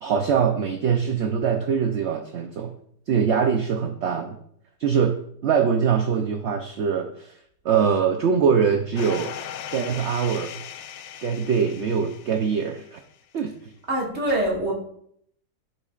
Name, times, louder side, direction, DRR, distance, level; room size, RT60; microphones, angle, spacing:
voice 1, 0.0-2.7 3.1-4.4 4.8-7.3 7.6-9.3 9.7-10.5 11.2-13.0 13.3-13.7, right 6 dB, 65° right, 5 dB, 0.7 m, -23 dB
sound 1, 9.0-13.0, left 9 dB, 70° left, 0.7 m, -38 dB
voice 2, 13.9-14.7, right 1 dB, 40° right, -2 dB, 2.2 m, -24 dB
11.5 x 6.8 x 2.4 m, 0.68 s
omnidirectional pair, 1.8 m